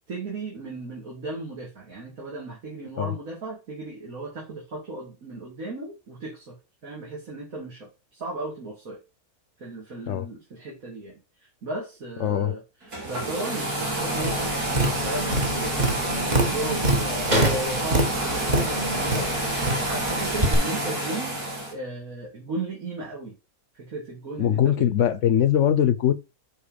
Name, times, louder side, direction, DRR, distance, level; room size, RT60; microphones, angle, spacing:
voice 1, 0.1-6.6 6.8-9.0 9.6-15.8 16.1-19.3 19.8-21.4 21.7-23.4 23.7-24.9, right 2 dB, 65° right, 2.9 m, -36 dB
voice 2, 12.2-12.6 17.3-17.5 24.4-26.1, left 10 dB, 60° left, 0.9 m, -22 dB
sound 1, 12.8-21.7, right 1 dB, 80° right, 3.2 m, -28 dB
Tap, 14.2-20.5, right 2 dB, 30° right, 1.5 m, -26 dB
7.3 x 4.4 x 5.1 m
omnidirectional pair, 1.6 m